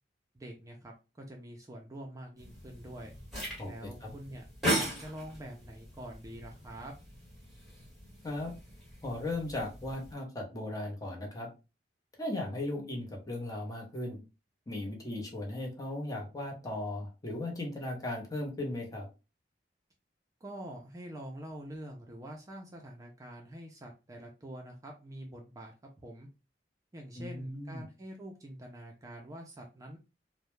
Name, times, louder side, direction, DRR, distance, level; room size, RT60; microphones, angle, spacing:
voice 1, 0.3-3.1 3.7-6.9 20.4-26.3 26.9-30.0, right 1 dB, 20° right, 1 dB, 0.4 m, -46 dB
sound 1, 2.4-10.1, right 1 dB, ahead, 1.2 m, -39 dB
voice 2, 3.6-4.1 8.2-8.5 9.0-11.5 12.2-14.2 14.7-19.1 27.2-27.8, left 1 dB, 20° left, 0 dB, 0.7 m, -37 dB
2.2 x 2.0 x 3.0 m, 0.30 s
head